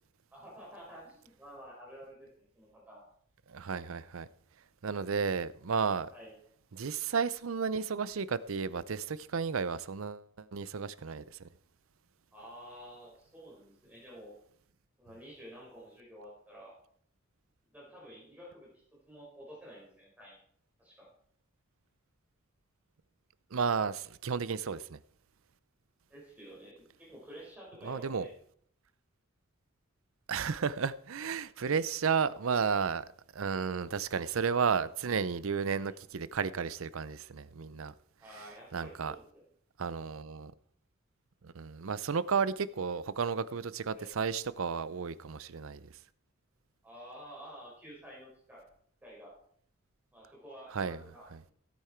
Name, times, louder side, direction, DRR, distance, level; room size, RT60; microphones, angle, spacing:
voice 1, 0.3-2.3 2.5-3.0 6.1-6.3 12.3-14.3 15.0-16.8 17.7-20.4 20.8-21.1 26.1-28.3 35.8-35.9 38.2-39.4 43.9-44.1 46.8-48.6 49.0-49.3 50.1-51.2, equal, 10° right, 5.1 m, -50 dB
voice 2, 3.5-4.3 4.8-6.1 6.7-11.4 23.5-25.0 27.8-28.3 30.3-33.1 33.3-37.9 38.4-38.5 38.7-39.2 39.8-40.5 41.4-45.8 50.7-51.0 51.3-51.4, right 6 dB, 75° right, 0.6 m, -33 dB
16.5 x 8.6 x 4.5 m
head